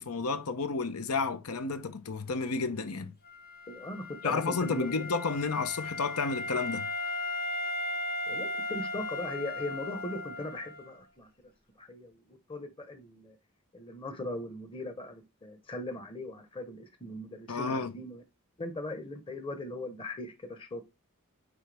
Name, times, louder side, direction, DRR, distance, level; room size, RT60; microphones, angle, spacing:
voice 1, 0.0-3.1 4.2-6.9 17.5-17.9, left 4 dB, 90° left, 0.8 m, -31 dB
Wind instrument woodwind instrument, 3.2-11.0, left 2 dB, 40° left, 1.3 m, -37 dB
voice 2, 3.7-4.9 8.3-11.3 11.8-12.2 12.5-13.4 13.7-18.2 18.6-20.8, left 1 dB, 25° left, 1.0 m, -39 dB
9.0 x 3.4 x 3.4 m
head